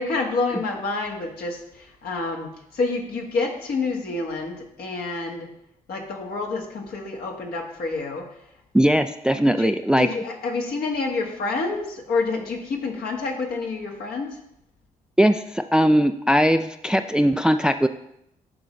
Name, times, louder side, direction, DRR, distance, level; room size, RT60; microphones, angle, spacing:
voice 1, 0.0-5.5 5.9-8.3 9.3-14.4, left 3 dB, 65° left, 1 dB, 1.5 m, -28 dB
voice 2, 8.7-10.1 15.2-17.9, equal, 5° right, 9 dB, 0.3 m, -19 dB
11.5 x 3.9 x 3.2 m, 0.78 s
hypercardioid pair, 50°, 17 cm